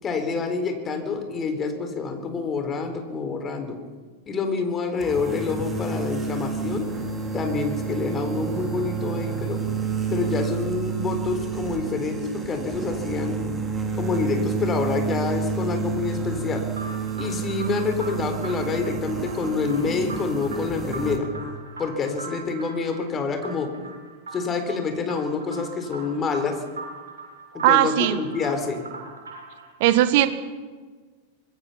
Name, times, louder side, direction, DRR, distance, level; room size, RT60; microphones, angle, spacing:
voice 1, 0.0-3.8 4.3-6.8 7.3-9.6 10.1-13.4 13.9-16.6 17.2-21.3 21.8-23.7 24.3-26.6 27.7-28.8, left 4 dB, 25° left, 6 dB, 4.1 m, -27 dB
sound 1, 5.0-21.2, right 5 dB, 15° right, 3.4 m, -29 dB
sound 2, 16.7-29.7, right 3 dB, 70° right, 6.9 m, -41 dB
voice 2, 27.6-28.2 29.8-30.3, right 14 dB, 50° right, 12 dB, 1.6 m, -18 dB
26.0 x 21.0 x 5.8 m, 1.4 s
figure-of-eight pair, 90°, 0 cm